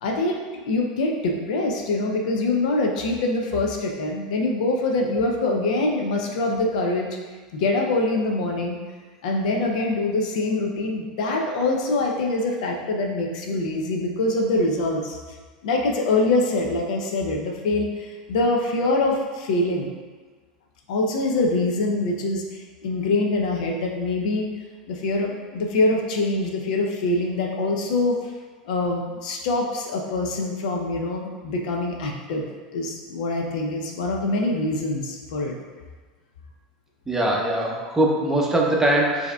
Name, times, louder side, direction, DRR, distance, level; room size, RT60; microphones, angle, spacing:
voice 1, 0.0-7.1 7.5-8.8 9.2-15.2 15.6-19.9 20.9-24.5 24.9-28.2 28.6-35.5, left 2 dB, 70° left, 1 dB, 0.5 m, -24 dB
voice 2, 37.1-39.3, right 1 dB, 10° right, -2 dB, 0.7 m, -21 dB
4.6 x 2.7 x 2.2 m, 1.4 s
hypercardioid pair, 95°, 4 cm